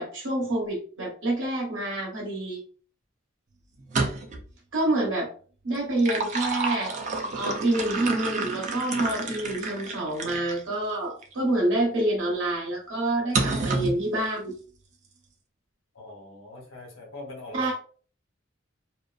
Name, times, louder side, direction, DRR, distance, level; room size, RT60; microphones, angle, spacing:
voice 1, 0.0-2.6 4.7-5.3 5.6-6.9 7.4-14.5 17.5-17.7, right 1 dB, 65° right, -2 dB, 0.8 m, -27 dB
sound 1, 3.8-4.5 5.7-10.6 11.2-11.3 13.3-14.0, right 3 dB, 35° right, 0.4 m, -29 dB
voice 2, 15.9-17.7, left 1 dB, 80° left, -1 dB, 1.0 m, -41 dB
2.5 x 2.2 x 2.4 m, 0.42 s
head